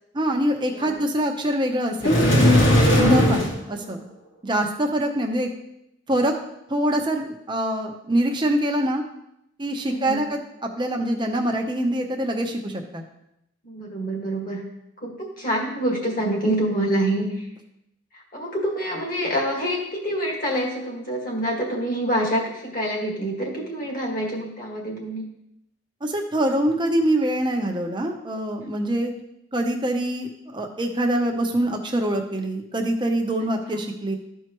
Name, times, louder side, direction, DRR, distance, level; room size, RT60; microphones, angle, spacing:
voice 1, 0.1-2.2 2.9-4.0 4.4-5.5 6.1-6.3 6.7-9.0 9.6-13.0 26.0-29.1 29.5-34.2, right 1 dB, 20° right, 3 dB, 0.8 m, -24 dB
sound 1, 2.0-3.6, equal, 70° left, 2.6 m, -17 dB
voice 2, 2.9-3.5 9.8-10.3 13.6-14.6 15.0-17.5 18.1-25.3 28.6-28.7, right 1 dB, 40° left, -1 dB, 1.8 m, -27 dB
13.0 x 4.6 x 3.0 m, 0.83 s
head